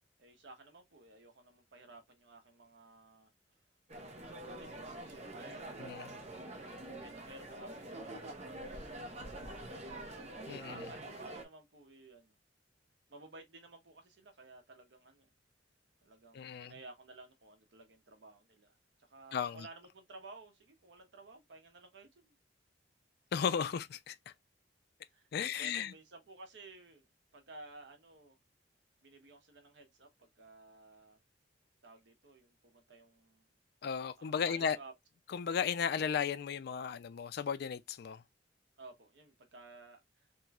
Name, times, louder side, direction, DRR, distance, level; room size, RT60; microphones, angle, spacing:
voice 1, 0.2-3.3 4.3-5.9 7.0-9.9 10.7-12.4 13.1-15.3 16.0-18.8 19.1-22.3 25.1-27.0 27.3-28.4 29.0-31.2 31.8-33.4 34.2-34.9 38.8-40.3, right 2 dB, 70° right, 0.9 m, -55 dB
sound 1, 3.9-11.4, right 1 dB, 35° right, 0.8 m, -46 dB
voice 2, 5.8-6.1 10.5-10.9 16.3-16.7 19.3-19.7 23.3-24.3 25.3-25.9 33.8-34.8 35.3-38.2, left 7 dB, 60° left, 0.3 m, -35 dB
3.0 x 3.0 x 2.3 m
head